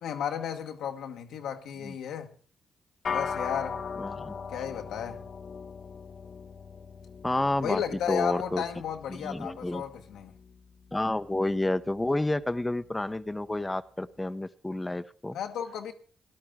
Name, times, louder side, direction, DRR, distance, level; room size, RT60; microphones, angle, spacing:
voice 1, 0.0-2.3 3.1-3.8 4.5-5.3 7.6-10.3 15.3-15.9, left 8 dB, 85° left, 1.3 m, -34 dB
sound 1, 3.0-12.6, left 6 dB, 60° left, 0.8 m, -40 dB
voice 2, 4.0-4.3 7.2-7.8 8.1-8.6 9.1-9.8 10.9-15.4, left 1 dB, 15° left, 0.8 m, -30 dB
17.5 x 11.5 x 3.6 m
supercardioid pair, 55°, 0 cm